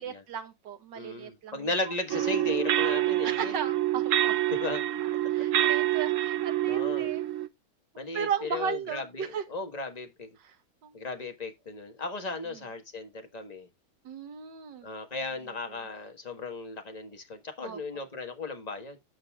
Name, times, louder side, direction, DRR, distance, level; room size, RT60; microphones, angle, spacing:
voice 1, 0.0-1.7 3.2-4.4 5.3-7.2 8.1-9.4 10.4-10.6 10.8-11.0 14.0-14.9 17.6-17.8, right 7 dB, 90° right, 1.8 m, -35 dB
voice 2, 0.9-3.5 4.5-4.8 6.7-7.1 8.0-10.3 10.9-13.7 14.8-19.0, left 3 dB, 25° left, 1.4 m, -36 dB
sound 1, 2.1-7.5, right 13 dB, 60° right, 0.9 m, -27 dB
15.5 x 5.4 x 2.4 m
omnidirectional pair, 1.9 m